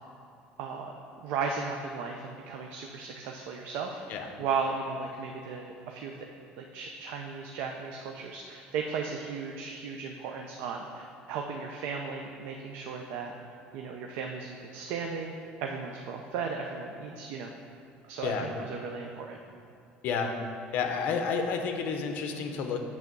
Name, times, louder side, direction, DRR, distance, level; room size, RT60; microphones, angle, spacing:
voice 1, 0.6-0.9 1.2-6.2 6.6-13.3 13.7-15.3 15.6-17.5 18.1-19.4, right 5 dB, 70° right, 2 dB, 0.6 m, -36 dB
voice 2, 20.7-22.8, left 5 dB, 55° left, 4 dB, 0.8 m, -30 dB
8.1 x 3.6 x 6.6 m, 2.4 s
cardioid pair, 160°, 4 cm